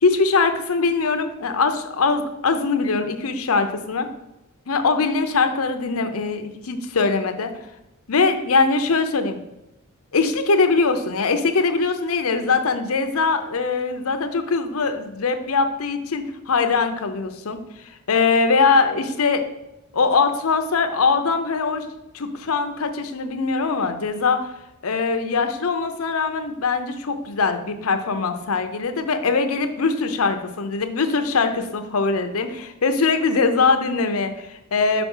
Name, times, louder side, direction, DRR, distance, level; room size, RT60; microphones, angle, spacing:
voice 1, 0.0-4.1 4.7-7.5 8.1-9.4 10.1-17.6 18.1-19.4 19.9-21.9 22.1-24.5 24.8-35.0, left 4 dB, 85° left, 8 dB, 0.7 m, -22 dB
6.0 x 4.2 x 5.4 m, 0.95 s
head